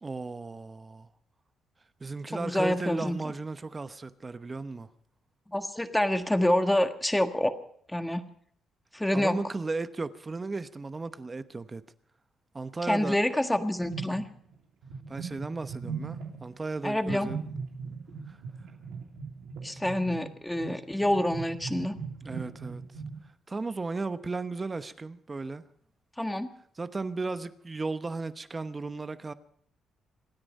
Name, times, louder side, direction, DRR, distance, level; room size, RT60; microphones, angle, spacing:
voice 1, 0.0-1.1 2.0-4.9 9.1-11.8 12.5-13.2 15.1-17.4 18.3-18.4 19.7-19.8 22.2-22.8 23.5-25.7 26.8-29.3, right 3 dB, 25° right, 1.0 m, -35 dB
voice 2, 2.3-3.2 5.5-7.5 7.9-8.2 8.9-9.4 12.9-14.2 16.8-17.3 19.6-21.9 26.2-26.5, left 1 dB, 5° left, 1.5 m, -27 dB
sound 1, 13.9-14.5 14.8-16.6 17.0-23.2, right 5 dB, 85° right, 2.9 m, -39 dB
26.0 x 9.8 x 5.4 m
cardioid pair, 90°, 0 cm